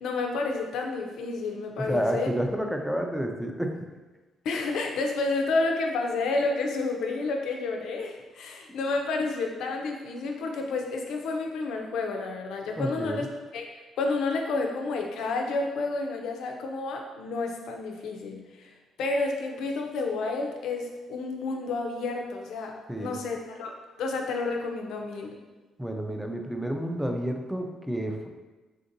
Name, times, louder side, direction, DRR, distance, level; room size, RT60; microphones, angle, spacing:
voice 1, 0.0-2.3 4.4-13.3 13.5-13.7 14.0-23.7 24.0-25.3, left 3 dB, 80° left, 2 dB, 0.4 m, -30 dB
voice 2, 1.9-3.7 12.8-13.2 22.9-23.2 25.8-28.3, equal, ahead, 3 dB, 0.4 m, -30 dB
3.5 x 2.6 x 2.6 m, 1.2 s
cardioid pair, 90°, 0 cm